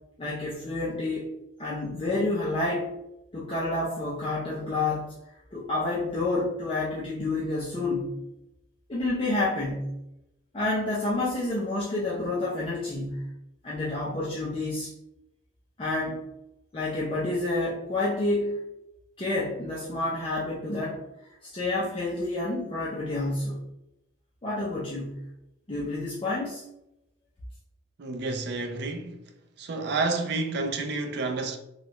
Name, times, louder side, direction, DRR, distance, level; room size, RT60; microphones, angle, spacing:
voice 1, 0.2-1.3 1.6-3.0 3.3-5.1 5.5-8.1 8.9-9.9 10.5-13.3 13.6-14.9 15.8-16.2 16.7-18.6 19.2-21.0 21.4-23.6 24.4-25.1 25.7-26.6, left 2 dB, 25° left, 0.5 m, -29 dB
voice 2, 28.0-29.3 29.6-31.6, right 3 dB, 55° right, 0.4 m, -30 dB
3.0 x 2.3 x 3.0 m
head